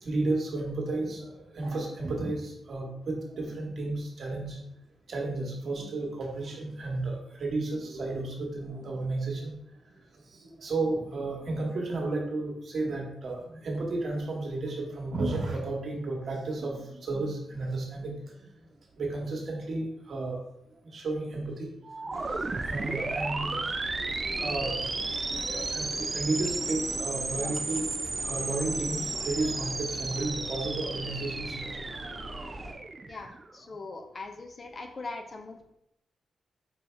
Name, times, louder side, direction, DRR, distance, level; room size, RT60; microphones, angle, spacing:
voice 1, 0.0-4.6 5.1-9.5 10.3-18.2 19.0-20.4 20.9-21.7 22.0-22.3 22.6-23.6 24.0-27.8 28.2-31.8, right 2 dB, 60° right, -1 dB, 1.2 m, -33 dB
sound 1, 21.8-33.5, right 3 dB, 40° right, 0.4 m, -34 dB
sound 2, 22.1-32.7, right 1 dB, 15° right, 1.2 m, -42 dB
voice 2, 33.1-35.7, left 3 dB, 45° left, 5 dB, 0.7 m, -41 dB
5.2 x 2.7 x 3.3 m, 0.77 s
hypercardioid pair, 40°, 0 cm